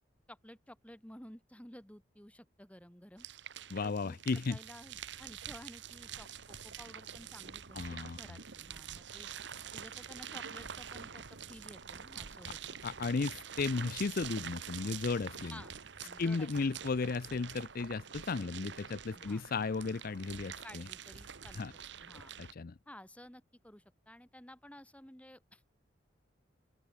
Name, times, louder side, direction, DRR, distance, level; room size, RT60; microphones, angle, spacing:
voice 1, 0.3-3.3 3.8-9.3 9.7-12.8 15.5-15.7 16.0-16.8 19.1-19.5 20.6-21.7 22.0-22.3 22.9-25.7, left 1 dB, 5° left, 2.4 m, -54 dB
sound 1, 3.2-22.5, right 8 dB, 70° right, 1.3 m, -46 dB
voice 2, 3.7-4.6 7.7-8.2 12.8-15.6 16.2-20.8 21.6-21.7 22.4-22.7, left 4 dB, 50° left, 0.5 m, -35 dB
open air
head